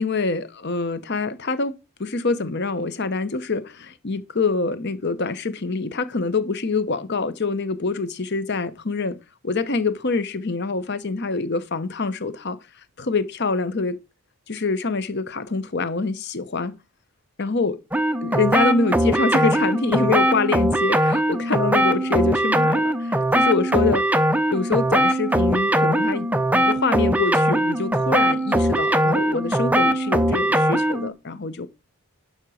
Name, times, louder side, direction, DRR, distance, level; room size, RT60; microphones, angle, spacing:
voice 1, 0.0-12.6 13.0-14.0 14.5-16.7 17.4-17.8 18.2-31.7, left 4 dB, 50° left, 0.9 m, -25 dB
sound 1, 17.9-31.1, right 1 dB, 5° right, 0.6 m, -20 dB
11.5 x 4.5 x 6.3 m
head